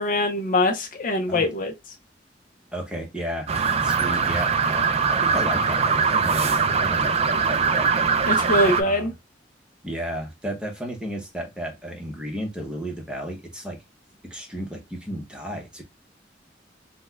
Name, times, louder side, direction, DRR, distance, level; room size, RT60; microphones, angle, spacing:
voice 1, 0.0-1.7 8.2-9.1, left 1 dB, 50° left, 0.5 m, -23 dB
voice 2, 2.7-3.5 3.8-7.9 8.8-9.1 9.8-13.8 14.2-15.8, equal, 5° right, 0.9 m, -33 dB
sound 1, 3.5-8.8, right 5 dB, 35° right, 0.3 m, -22 dB
4.1 x 2.2 x 2.2 m
head